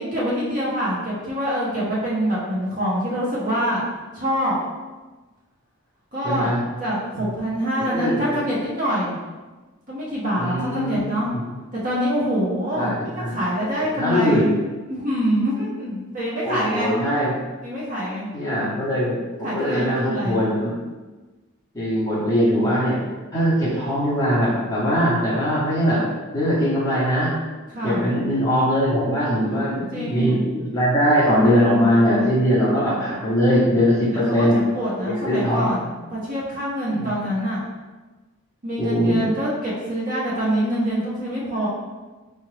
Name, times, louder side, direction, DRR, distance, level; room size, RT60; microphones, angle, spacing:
voice 1, 0.0-3.8 4.1-4.5 6.1-9.2 9.9-11.3 11.7-14.5 14.9-16.9 17.6-18.3 19.4-20.4 27.7-28.1 29.4-30.4 34.3-37.6 38.6-41.7, equal, 35° right, -7 dB, 0.9 m, -25 dB
voice 2, 6.2-6.6 7.9-8.4 10.3-11.4 12.7-13.4 14.0-14.5 16.4-17.3 18.3-20.7 21.7-23.0 23.3-26.0 26.3-27.3 27.8-34.6 35.0-35.7 36.9-37.1 38.8-39.3, equal, 15° left, -9 dB, 1.0 m, -21 dB
4.3 x 2.4 x 3.3 m, 1.2 s
head